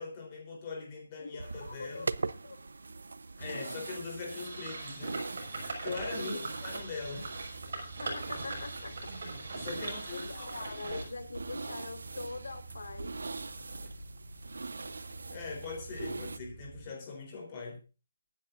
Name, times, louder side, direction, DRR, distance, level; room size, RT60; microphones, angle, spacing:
voice 1, 0.0-2.0 3.4-7.3 9.5-10.7 15.3-17.8, left 4 dB, 20° left, 1 dB, 3.8 m, -41 dB
voice 2, 1.2-2.6 6.2-6.5 8.0-8.9 9.7-13.1, left 3 dB, 85° left, 7 dB, 4.2 m, -43 dB
sound 1, 1.4-16.4, right 3 dB, 90° right, 0.9 m, -42 dB
sound 2, 4.2-11.0, right 2 dB, 45° right, 5.9 m, -41 dB
sound 3, 6.6-16.9, right 2 dB, 15° right, 6.2 m, -49 dB
23.5 x 9.7 x 2.6 m, 0.31 s
hypercardioid pair, 180°, 0 cm